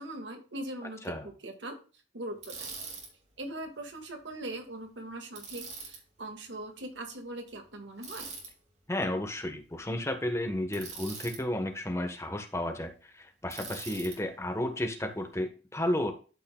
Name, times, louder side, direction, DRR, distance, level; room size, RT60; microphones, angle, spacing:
voice 1, 0.0-1.1 1.4-1.8 2.1-2.7 3.4-8.4, right 1 dB, 85° right, 4 dB, 1.9 m, -41 dB
Bicycle, 2.4-3.1 5.4-6.0 8.0-8.5 10.7-11.4 13.5-14.2, right 4 dB, 40° right, 2.4 m, -42 dB
voice 2, 8.9-16.1, left 1 dB, 15° left, 5 dB, 1.2 m, -32 dB
12.5 x 5.6 x 2.3 m, 0.35 s
head